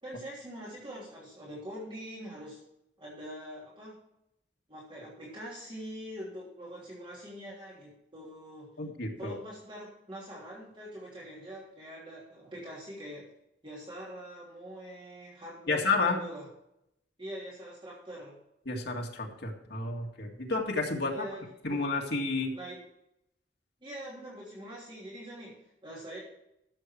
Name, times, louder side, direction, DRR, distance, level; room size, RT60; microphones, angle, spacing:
voice 1, 0.0-2.6 3.0-4.0 4.7-8.7 9.2-13.3 13.6-16.5 17.2-18.4 21.1-21.4 21.7-21.8 22.5-22.8 23.8-26.2, equal, 30° right, -6 dB, 3.1 m, -44 dB
voice 2, 8.8-9.4 15.7-16.2 18.7-21.3 21.6-22.5, left 3 dB, 65° left, 1 dB, 2.0 m, -31 dB
13.5 x 7.4 x 4.5 m, 0.81 s
head